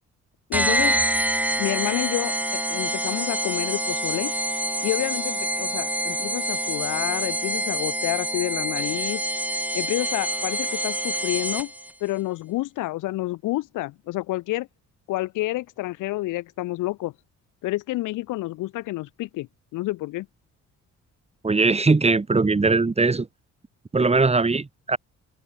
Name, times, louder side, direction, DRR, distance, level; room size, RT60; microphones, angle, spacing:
voice 1, 0.5-1.0 1.6-4.3 4.8-9.2 9.7-11.7 12.0-14.7 15.1-17.1 17.6-19.5 19.7-20.3, left 18 dB, 85° left, 0.9 m, -29 dB
sound 1, 0.5-11.9, right 1 dB, 5° right, 3.5 m, -26 dB
voice 2, 21.4-23.3 23.9-25.0, right 3 dB, 20° right, 1.8 m, -20 dB
open air
cardioid pair, 90°, 30 cm